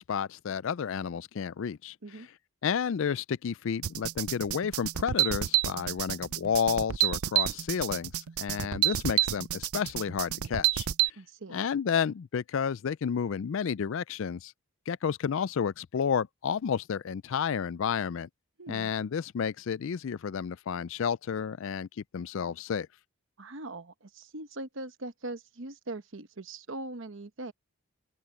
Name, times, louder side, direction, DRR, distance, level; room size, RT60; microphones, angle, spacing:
voice 1, 0.0-1.9 2.6-10.9 11.5-14.5 14.9-18.3 18.7-21.9 22.1-22.9, left 7 dB, 60° left, 0.4 m, -31 dB
sound 1, 3.8-11.1, right 13 dB, 85° right, 0.5 m, -28 dB
voice 2, 11.2-11.7 18.6-18.9 23.4-27.5, right 2 dB, 60° right, 1.1 m, -41 dB
open air
head